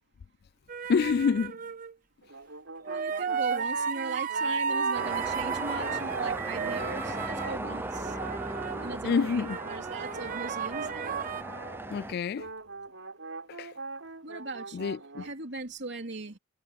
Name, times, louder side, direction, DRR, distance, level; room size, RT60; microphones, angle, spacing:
sound 1, 0.7-1.9 2.9-9.0 9.4-11.4, right 6 dB, 40° right, 0.9 m, -33 dB
voice 1, 0.9-1.6 9.0-9.6 11.9-12.5 13.6-13.7 14.7-15.2, left 5 dB, 50° left, 0.3 m, -27 dB
sound 2, 2.2-5.4 5.7-12.1 12.4-15.3, right 3 dB, 75° right, 4.5 m, -42 dB
voice 2, 2.8-8.2 8.8-11.2 14.2-14.9 15.2-16.4, right 2 dB, 60° right, 3.1 m, -39 dB
sound 3, 4.9-12.1, right 2 dB, 10° right, 0.7 m, -37 dB
head